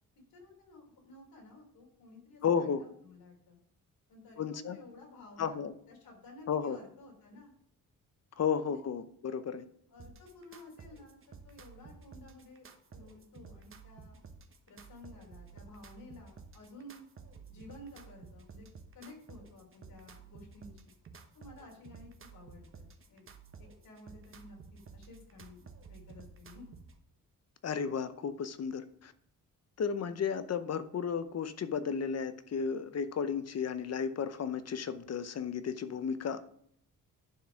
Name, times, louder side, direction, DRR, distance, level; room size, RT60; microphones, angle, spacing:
voice 1, 0.3-3.6 4.1-7.5 8.6-8.8 9.9-14.2 14.7-17.1 17.5-18.7 18.9-20.9 21.3-23.2 23.6-26.7, left 2 dB, 85° left, -1 dB, 3.6 m, -53 dB
voice 2, 2.4-2.8 4.4-4.8 5.4-5.7 6.5-6.8 8.4-9.6 27.6-29.1 29.8-36.4, left 7 dB, 50° left, 12 dB, 0.7 m, -33 dB
sound 1, 10.0-27.0, right 5 dB, 40° right, 1.0 m, -53 dB
10.5 x 4.7 x 6.0 m, 0.66 s
wide cardioid pair, 155°, 34 cm